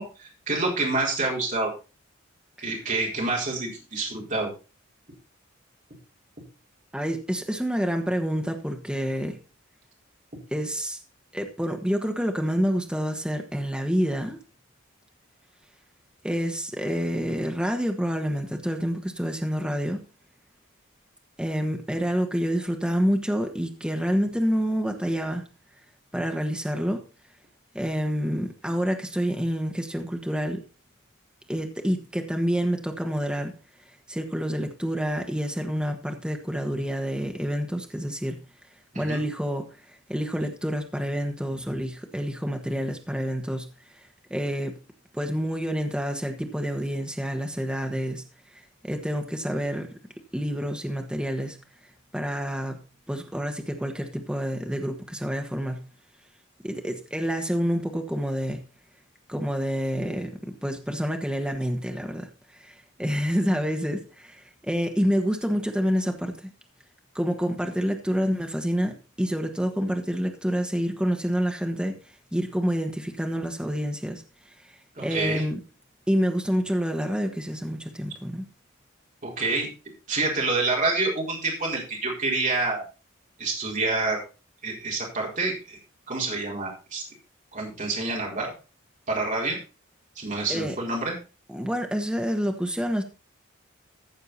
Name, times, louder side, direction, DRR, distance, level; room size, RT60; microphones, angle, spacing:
voice 1, 0.0-1.7 2.6-4.5 38.9-39.2 75.0-75.4 79.2-79.7 80.1-82.8 83.4-84.2 84.6-85.8 86.1-87.0 87.5-88.5 89.1-89.6 90.2-91.1, right 3 dB, 40° right, -2 dB, 4.4 m, -27 dB
voice 2, 6.9-9.4 10.5-11.0 11.3-14.4 16.2-20.0 21.4-25.4 26.1-27.0 27.7-30.6 31.5-33.5 34.1-38.4 38.9-43.7 43.9-44.0 44.3-44.8 45.1-48.3 48.8-49.9 50.3-51.6 52.1-52.8 53.1-55.9 56.6-58.6 59.3-66.5 67.1-74.2 74.6-75.6 76.1-78.5 90.5-90.7 91.5-93.0, equal, 5° right, 4 dB, 1.3 m, -28 dB
14.5 x 6.8 x 4.2 m, 0.32 s
head